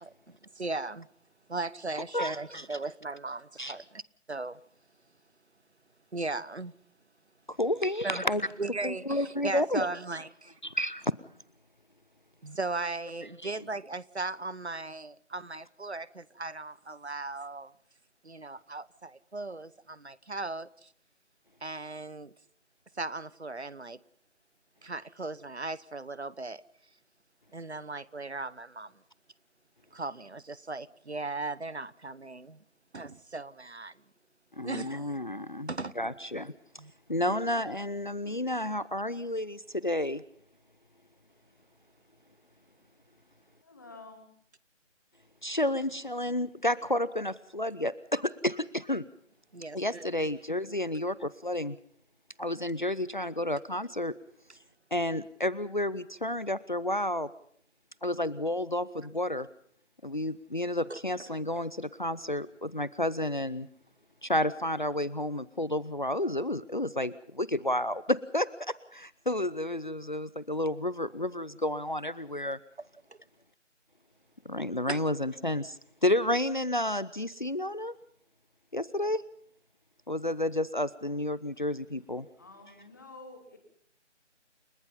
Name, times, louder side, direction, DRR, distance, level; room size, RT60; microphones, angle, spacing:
voice 1, 0.0-1.1 1.5-4.0 4.3-4.6 6.1-6.7 8.0-8.3 8.6-10.6 12.4-17.7 18.2-20.9 21.6-22.3 23.0-24.0 24.8-26.6 27.5-28.9 29.9-32.6 32.9-33.9 34.6-35.0 35.7-35.9 36.8-36.9 49.5-50.3 60.9-61.0 74.9-75.0, right 3 dB, 65° right, 1.1 m, -37 dB
voice 2, 2.1-2.7 3.6-3.7 7.5-8.4 8.8-9.9 10.6-11.1 13.4-13.5 34.6-35.7 36.0-36.5 37.1-40.2 45.4-49.0 49.7-51.8 52.4-54.1 54.9-57.3 58.0-59.5 60.0-63.7 64.2-72.6 74.4-77.9 78.7-79.2 80.1-82.3, left 1 dB, 40° left, 0.8 m, -31 dB
voice 3, 43.7-44.3 82.4-83.6, left 2 dB, 15° left, 2.4 m, -49 dB
29.5 x 17.5 x 5.7 m
figure-of-eight pair, 165°, 36 cm